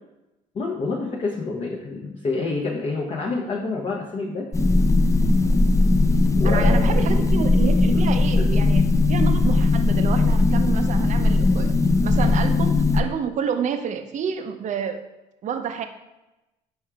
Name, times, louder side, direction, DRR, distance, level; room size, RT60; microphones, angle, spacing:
voice 1, 0.5-4.5 6.4-7.1 8.3-8.7, left 3 dB, 40° left, -2 dB, 0.8 m, -28 dB
sound 1, 4.5-13.0, left 2 dB, 20° left, 0.4 m, -18 dB
voice 2, 6.4-8.8 9.1-11.7 12.0-15.0 15.4-15.9, right 7 dB, 45° right, 7 dB, 0.5 m, -29 dB
4.6 x 4.4 x 2.3 m, 0.98 s
supercardioid pair, 70°, 18 cm